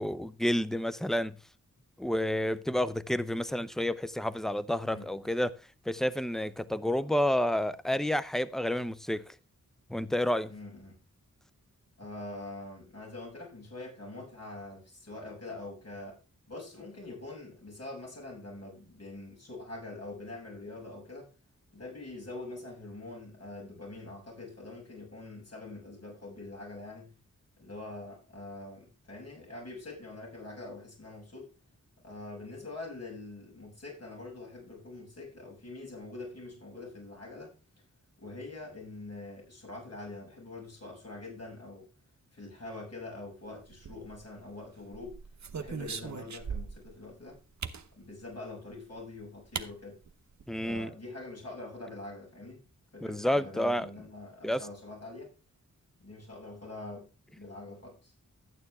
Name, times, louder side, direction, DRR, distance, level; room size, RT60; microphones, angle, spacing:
voice 1, 0.0-1.4 2.0-5.6 5.9-9.3 9.9-10.5 50.5-50.9 53.0-53.9 54.4-54.7, left 1 dB, ahead, 0.6 m, -30 dB
voice 2, 4.8-5.3 10.5-10.9 12.0-16.2 16.5-21.3 21.7-27.1 27.6-31.5 32.0-37.5 38.2-41.9 42.3-45.2 45.5-47.4 48.0-50.0 50.6-52.6 52.9-55.3 56.0-57.1 57.4-58.1, left 2 dB, 50° left, 7.2 m, -44 dB
sound 1, 43.7-44.4 44.9-46.9 47.6-47.9 49.0-49.1 49.5-49.7 50.0-50.1 50.4-50.8, right 6 dB, 60° right, 0.9 m, -39 dB
12.0 x 9.2 x 3.5 m
wide cardioid pair, 85°, 32 cm